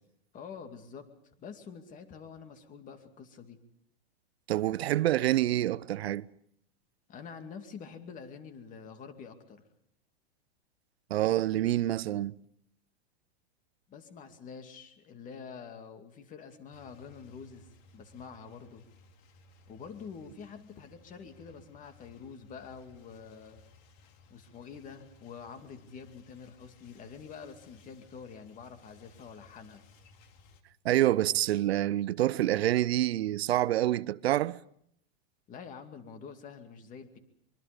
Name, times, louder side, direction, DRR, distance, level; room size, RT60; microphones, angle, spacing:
voice 1, 0.3-1.1 1.4-3.6 7.1-9.6 13.9-18.8 19.7-23.6 24.3-29.8 35.5-37.2, left 6 dB, 25° left, 2.4 m, -47 dB
voice 2, 4.5-6.2 11.1-12.3 30.8-34.6, right 14 dB, 75° right, 0.9 m, -27 dB
sound 1, 16.7-30.6, left 3 dB, 45° left, 2.8 m, -60 dB
25.0 x 23.5 x 5.2 m
supercardioid pair, 145°, 31 cm